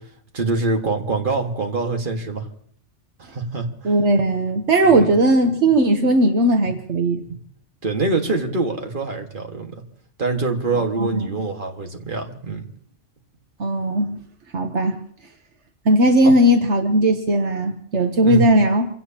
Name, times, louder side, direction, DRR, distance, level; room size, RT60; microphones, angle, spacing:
voice 1, 0.3-2.5 3.2-3.9 4.8-5.1 6.6-6.8 7.2-7.4 7.8-9.7 10.2-12.7 16.2-16.3 18.2-18.4, right 3 dB, 45° right, 3 dB, 1.9 m, -24 dB
voice 2, 3.8-7.2 10.7-11.4 13.6-14.1 14.5-15.0 15.8-18.9, right 1 dB, 75° right, 5 dB, 1.4 m, -18 dB
27.5 x 17.0 x 2.9 m, 0.62 s
omnidirectional pair, 1.2 m